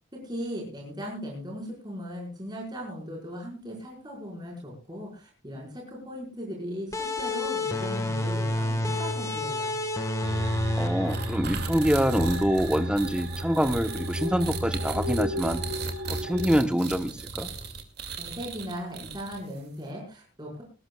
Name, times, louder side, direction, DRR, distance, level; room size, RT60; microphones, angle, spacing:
voice 1, 0.2-9.8 18.2-20.6, equal, 20° right, -2 dB, 5.2 m, -38 dB
sound 1, 6.9-12.2, left 1 dB, 15° left, 1.6 m, -29 dB
sound 2, 10.2-16.6, equal, 75° right, 4.0 m, -33 dB
voice 2, 10.8-15.6 16.1-17.5, equal, 5° right, 8 dB, 1.0 m, -25 dB
sound 3, 11.1-19.6, right 5 dB, 55° right, 2.4 m, -37 dB
20.0 x 19.0 x 2.4 m, 0.31 s
head